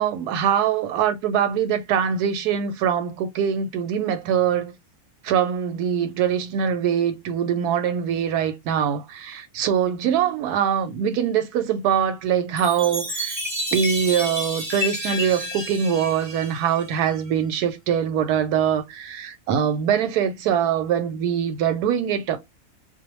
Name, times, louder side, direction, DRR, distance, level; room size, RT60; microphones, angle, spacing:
voice 1, 0.0-4.7 5.2-13.4 13.7-22.4, right 8 dB, 90° right, 1.1 m, -23 dB
Chime, 12.6-17.2, equal, 20° right, 1.3 m, -30 dB
2.6 x 2.1 x 2.9 m
omnidirectional pair, 1.6 m